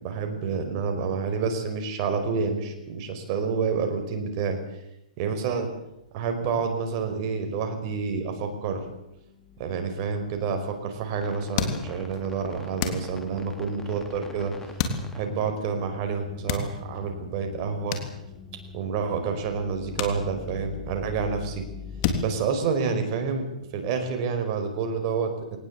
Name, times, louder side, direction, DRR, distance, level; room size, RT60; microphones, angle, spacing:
voice 1, 0.0-4.6 5.2-5.7 6.1-8.8 9.6-14.5 15.1-18.0 18.7-21.6 22.2-23.4 23.7-25.6, right 5 dB, 35° right, 5 dB, 5.2 m, -28 dB
sound 1, 6.0-6.1 6.3-6.7 7.0-22.2, left 4 dB, 10° left, 3.4 m, -44 dB
sound 2, 11.6-12.3 12.8-13.6 14.8-15.5 16.3-17.1 17.9-18.7 19.1-19.2 19.9-20.9 21.2-21.6 22.0-23.2, left 7 dB, 40° left, 3.5 m, -31 dB
21.0 x 19.5 x 8.4 m, 0.86 s
hypercardioid pair, 150°, 4 cm